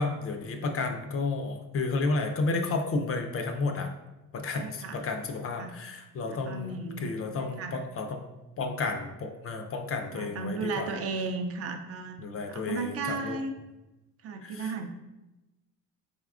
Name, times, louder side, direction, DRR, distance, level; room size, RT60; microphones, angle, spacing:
voice 1, 0.0-3.9 4.3-8.2 8.6-10.9 12.2-13.4 14.4-14.7, left 3 dB, 45° left, 5 dB, 0.4 m, -32 dB
voice 2, 4.5-5.0 5.6-5.7 6.3-7.1 7.4-7.8 10.1-12.2 12.5-13.5 14.2-14.9, right 3 dB, 45° right, 5 dB, 0.4 m, -35 dB
3.9 x 3.5 x 2.4 m, 1.0 s
cardioid pair, 130°, 34 cm